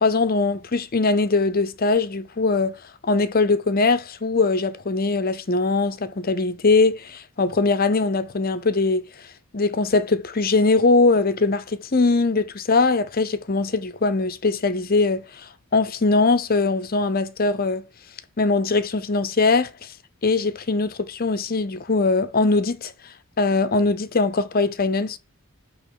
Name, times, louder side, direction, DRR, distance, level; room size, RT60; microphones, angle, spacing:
voice 1, 0.0-9.1 9.5-17.8 18.4-19.9 20.2-22.9 23.4-25.2, left 3 dB, 45° left, 0.7 m, -21 dB
8.7 x 3.0 x 5.6 m
head